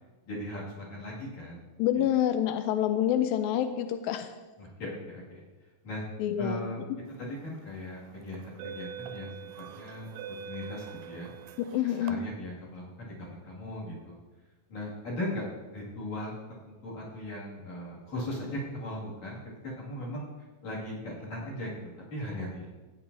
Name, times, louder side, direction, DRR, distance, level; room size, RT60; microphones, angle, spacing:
voice 1, 0.3-1.6 2.0-2.1 4.6-5.4 5.8-6.1 6.4-6.8 7.2-9.3 9.6-10.1 10.5-11.3 12.0-14.2 14.7-15.5 15.7-16.3 16.7-19.4 19.8-20.3 20.6-21.8 22.1-22.7, left 1 dB, 55° left, -6 dB, 3.6 m, -38 dB
voice 2, 1.8-4.3 6.2-6.7 11.6-12.2, left 10 dB, 90° left, 8 dB, 2.3 m, -27 dB
sound 1, 7.3-7.6 8.3-12.1, right 9 dB, 80° right, 2.1 m, -43 dB
15.0 x 8.8 x 2.7 m, 1.2 s
omnidirectional pair, 4.0 m